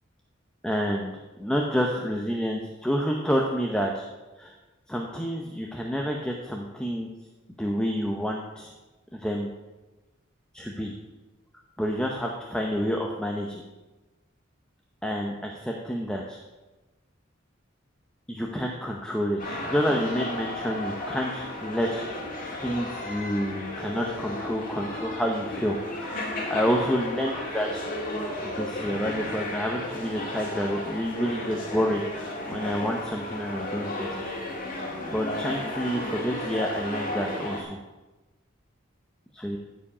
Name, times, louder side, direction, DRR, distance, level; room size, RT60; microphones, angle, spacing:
voice 1, 0.6-4.1 4.4-4.5 4.9-7.1 7.6-8.7 9.1-9.5 10.5-10.9 11.8-13.6 15.0-16.4 18.3-22.3 22.6-26.2 26.5-27.7 28.4-34.3 34.8-37.8 39.3-39.6, equal, 5° left, 0 dB, 0.7 m, -29 dB
sound 1, 19.4-37.6, left 1 dB, 45° left, 1.8 m, -34 dB
14.0 x 4.9 x 4.9 m, 1.1 s
head